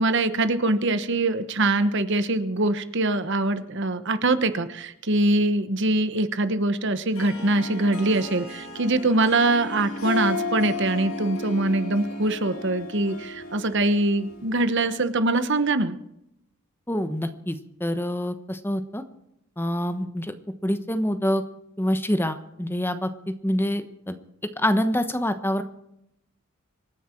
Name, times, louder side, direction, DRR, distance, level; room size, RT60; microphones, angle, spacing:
voice 1, 0.0-16.0, right 2 dB, 55° right, 11 dB, 1.1 m, -23 dB
Harp, 7.1-14.8, left 3 dB, 75° left, 4.3 m, -34 dB
voice 2, 16.9-19.0 19.6-20.3 20.6-21.4 21.8-24.2 24.6-25.6, equal, 10° left, 9 dB, 1.0 m, -26 dB
26.0 x 10.0 x 4.5 m, 0.81 s
head